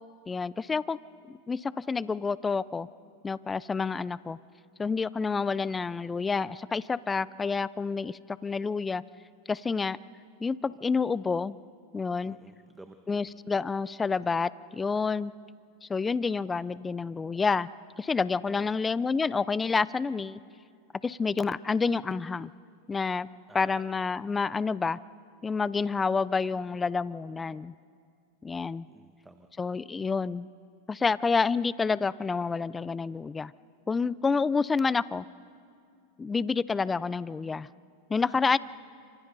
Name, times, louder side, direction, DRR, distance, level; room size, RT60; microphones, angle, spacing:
voice 1, 0.3-1.0 1.3-2.9 3.2-4.4 4.8-9.0 9.5-10.0 10.4-11.5 11.9-12.4 13.1-15.3 15.8-17.7 18.0-20.4 21.0-22.5 22.9-23.3 23.5-25.0 25.4-27.7 28.4-28.9 29.6-30.5 30.9-33.5 33.9-35.2 36.2-37.7 38.1-38.6, left 4 dB, 15° left, 18 dB, 0.5 m, -28 dB
voice 2, 12.2-13.2 18.5-18.7 23.5-23.9 28.9-29.5, right 2 dB, 10° right, 6 dB, 1.1 m, -51 dB
29.5 x 26.0 x 4.1 m, 2.2 s
hypercardioid pair, 120°, 0 cm